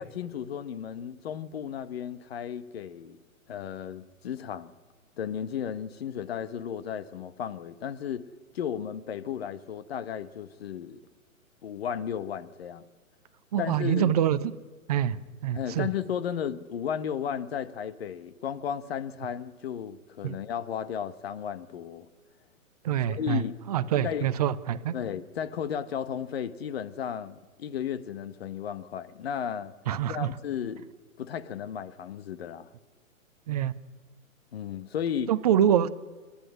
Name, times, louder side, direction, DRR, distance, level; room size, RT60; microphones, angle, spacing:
voice 1, 0.0-3.2 3.5-4.7 5.2-8.3 8.5-11.0 11.6-12.8 13.6-14.1 15.5-22.1 23.1-23.6 24.0-24.3 24.9-29.7 30.1-30.9 31.2-32.7 34.5-35.3, left 8 dB, 45° left, 1.2 m, -34 dB
voice 2, 13.5-14.4 14.9-15.2 15.4-15.9 20.2-20.4 22.8-23.4 23.7-24.9 29.9-30.3 33.5-33.7 35.3-35.9, right 10 dB, 30° right, 0.6 m, -25 dB
29.5 x 10.0 x 9.9 m
figure-of-eight pair, 125°, 42 cm